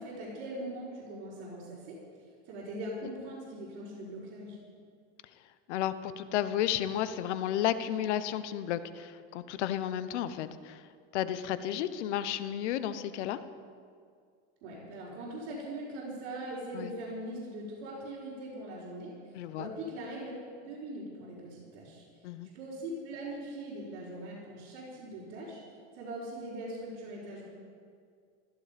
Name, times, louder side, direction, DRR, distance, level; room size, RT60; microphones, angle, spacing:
voice 1, 0.0-2.0 2.5-4.6 14.6-19.1 19.6-20.3 20.6-22.0 22.5-25.6 25.9-27.5, right 1 dB, 70° right, -9 dB, 4.7 m, -41 dB
voice 2, 5.7-10.8 11.1-13.4 16.7-16.9 19.3-19.7 22.2-22.5, left 11 dB, 90° left, 12 dB, 1.0 m, -32 dB
15.5 x 14.0 x 5.1 m, 2.1 s
supercardioid pair, 145°, 34 cm